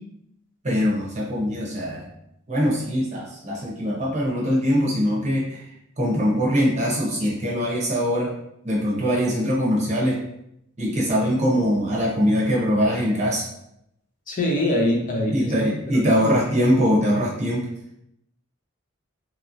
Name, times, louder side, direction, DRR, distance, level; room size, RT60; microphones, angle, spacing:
voice 1, 0.6-2.1 2.5-5.6 6.0-8.3 8.6-10.2 10.8-13.4 15.2-17.6, equal, 35° right, -5 dB, 0.8 m, -22 dB
voice 2, 14.3-16.3, left 1 dB, 40° left, 0 dB, 0.6 m, -24 dB
3.0 x 2.9 x 2.5 m, 0.78 s
head